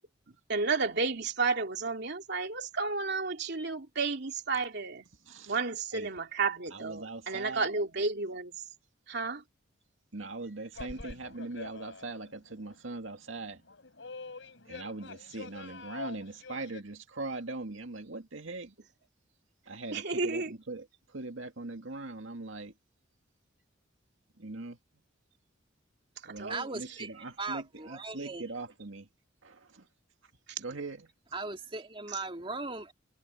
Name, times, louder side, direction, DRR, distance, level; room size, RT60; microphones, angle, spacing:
voice 1, 0.3-5.1 5.4-8.7 9.1-9.4 19.9-20.5 26.2-26.7 30.5-30.6 32.1-32.2, right 4 dB, 60° right, 2.9 m, -32 dB
voice 2, 6.7-7.7 10.1-13.6 14.7-18.7 19.7-22.7 24.4-24.8 26.2-29.1 29.4-29.9 30.6-31.0, right 3 dB, 80° right, 2.1 m, -41 dB
sound 1, 10.7-12.3 12.6-12.7 13.6-16.8, left 3 dB, 70° left, 4.9 m, -45 dB
voice 3, 26.5-28.4 31.3-32.9, right 3 dB, 25° right, 2.4 m, -38 dB
head